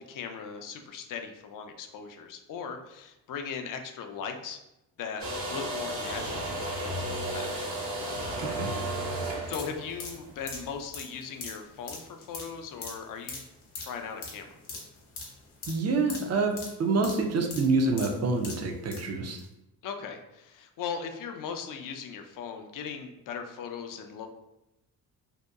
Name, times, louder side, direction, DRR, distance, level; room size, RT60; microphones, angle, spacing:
voice 1, 0.0-4.6 5.0-7.7 9.5-13.4 13.8-14.5 19.8-24.3, left 6 dB, 45° left, 5 dB, 0.5 m, -39 dB
sound 1, 5.2-10.7, right 1 dB, 60° right, 0.8 m, -33 dB
sound 2, 9.4-19.1 19.4-19.5, left 3 dB, 90° left, 0.7 m, -42 dB
voice 2, 15.7-16.5 16.8-19.4, right 3 dB, 35° right, 3 dB, 0.5 m, -26 dB
2.7 x 2.1 x 2.3 m, 0.91 s
hypercardioid pair, 50°, 46 cm